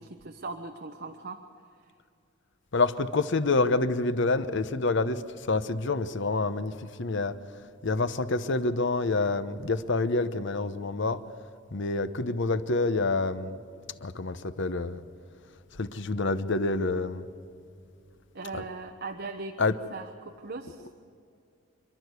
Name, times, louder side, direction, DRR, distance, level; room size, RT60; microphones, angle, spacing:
voice 1, 0.0-1.4 18.3-19.6 19.9-20.9, right 3 dB, 55° right, 4 dB, 1.0 m, -39 dB
voice 2, 2.7-5.2 5.5-7.4 7.8-11.2 11.7-13.6 14.0-15.0 15.8-17.3 18.5-18.6 19.6-19.8 20.8-20.9, left 3 dB, 65° left, 12 dB, 0.9 m, -27 dB
28.0 x 12.0 x 8.2 m, 2.5 s
head